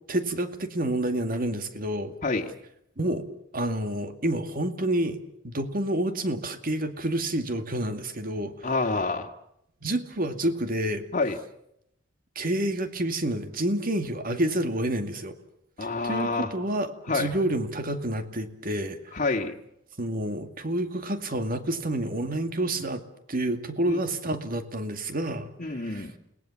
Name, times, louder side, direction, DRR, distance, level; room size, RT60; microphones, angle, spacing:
voice 1, 0.1-2.1 3.0-3.3 3.5-5.2 5.4-8.5 9.8-11.0 12.4-15.3 16.0-19.0 20.0-26.1, right 1 dB, 45° right, 8 dB, 2.3 m, -29 dB
voice 2, 8.6-9.3 11.1-11.4 15.8-16.5 17.1-17.3 19.1-19.5 23.9-24.0 25.6-26.1, left 3 dB, 40° left, 3 dB, 1.9 m, -27 dB
30.0 x 19.0 x 7.3 m, 0.78 s
head